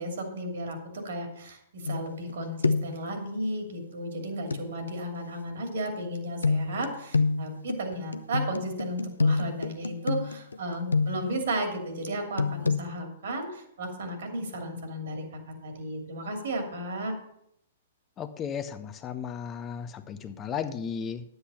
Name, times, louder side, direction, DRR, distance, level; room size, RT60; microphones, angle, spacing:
voice 1, 0.0-17.1, right 1 dB, 70° right, 4 dB, 2.7 m, -34 dB
sound 1, 1.9-2.3 2.6-3.0 4.5-4.7 6.4-11.4 12.4-12.8, left 4 dB, 90° left, 0.6 m, -27 dB
voice 2, 18.2-21.2, left 7 dB, 25° left, 10 dB, 0.7 m, -35 dB
9.9 x 8.0 x 5.7 m, 0.76 s
hypercardioid pair, 115°, 0 cm